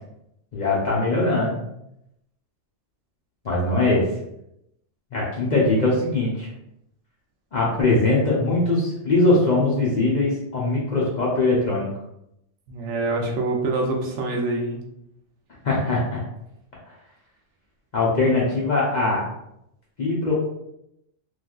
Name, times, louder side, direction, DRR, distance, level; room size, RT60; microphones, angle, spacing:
voice 1, 0.5-1.6 3.4-4.1 5.1-6.5 7.5-11.9 15.6-16.2 17.9-19.3 20.0-20.3, left 2 dB, 50° left, -5 dB, 0.6 m, -21 dB
voice 2, 12.7-14.8, right 2 dB, 75° right, 0 dB, 0.9 m, -25 dB
3.1 x 2.4 x 2.3 m, 0.81 s
omnidirectional pair, 1.3 m